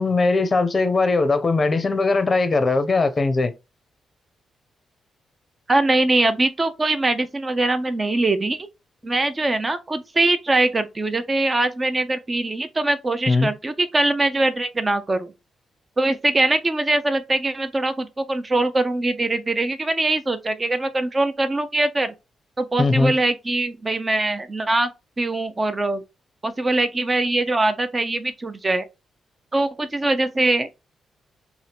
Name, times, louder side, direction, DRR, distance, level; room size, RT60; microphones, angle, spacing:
voice 1, 0.0-3.5 13.3-13.5 22.8-23.1, left 3 dB, 40° left, 0.5 m, -20 dB
voice 2, 5.7-8.6 9.0-15.3 16.0-22.1 22.6-24.9 25.2-26.0 26.4-28.8 29.5-30.7, right 2 dB, 30° right, 0.5 m, -22 dB
2.7 x 2.4 x 3.3 m
hypercardioid pair, 45°, 0 cm